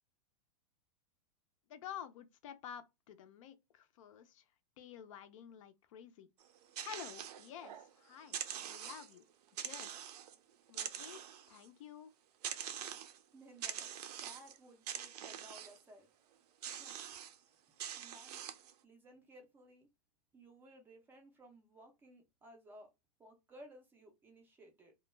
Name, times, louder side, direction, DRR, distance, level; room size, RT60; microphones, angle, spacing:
voice 1, 1.7-4.4 4.8-6.3 6.8-9.2 9.6-9.9 10.7-11.2 11.5-12.1, left 9 dB, 55° left, 0.4 m, -51 dB
sound 1, 6.4-7.9 8.2-9.2 9.6-10.4 10.7-11.7 12.4-13.2 13.6-14.6 14.9-15.8 16.6-17.4 17.8-18.7, right 9 dB, 80° right, 0.5 m, -44 dB
voice 2, 13.3-13.9 14.2-16.1 16.6-17.0 18.0-18.4 18.8-19.9 20.3-22.9 23.2-25.0, right 1 dB, 10° right, 0.4 m, -58 dB
2.2 x 2.1 x 3.1 m
supercardioid pair, 160°, 20 cm